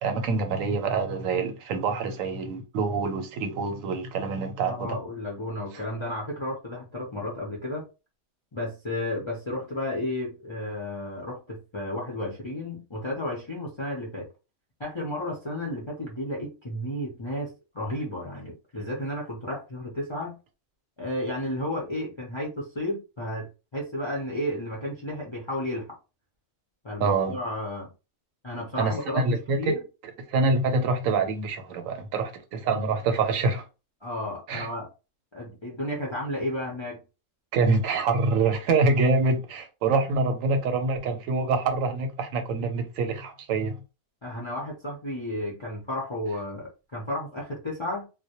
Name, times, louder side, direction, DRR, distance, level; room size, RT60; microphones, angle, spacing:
voice 1, 0.0-5.0 27.0-27.4 28.8-29.7 30.3-33.6 34.5-34.7 37.5-43.8, right 3 dB, 85° right, 1.0 m, -25 dB
voice 2, 4.7-7.9 8.5-14.3 14.8-20.4 21.0-26.0 26.8-27.9 28.4-29.2 29.6-29.8 34.0-34.9 35.3-37.0 44.2-48.1, left 1 dB, 40° left, 0.4 m, -32 dB
2.1 x 2.1 x 2.8 m
omnidirectional pair, 1.4 m